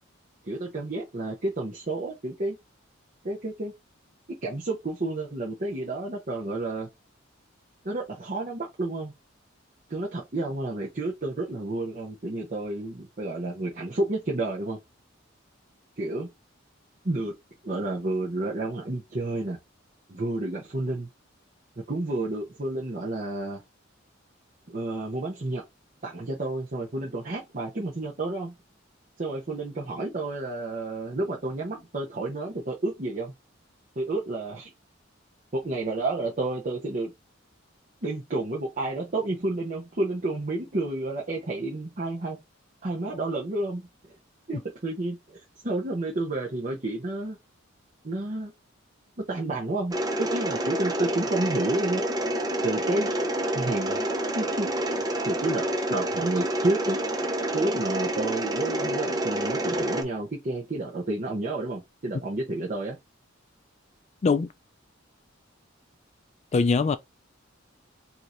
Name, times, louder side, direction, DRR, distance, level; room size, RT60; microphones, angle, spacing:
voice 1, 0.4-2.6 3.2-3.7 4.4-6.9 7.8-9.1 9.9-14.8 16.0-16.3 17.0-17.3 17.6-19.6 20.1-21.1 21.8-23.6 24.7-25.6 26.0-28.5 29.2-33.3 34.0-34.7 35.5-37.1 38.0-42.4 42.8-43.9 44.5-45.2 45.6-47.4 48.0-48.5 49.3-52.0 52.6-53.1 53.5-54.0 54.3-54.7 55.2-55.6 55.9-57.0 57.5-63.0, right 2 dB, 40° right, 0.9 m, -30 dB
Mechanisms, 49.9-60.0, right 1 dB, 20° right, 0.6 m, -28 dB
voice 2, 66.5-67.0, left 4 dB, 35° left, 0.3 m, -22 dB
4.6 x 2.8 x 2.6 m
head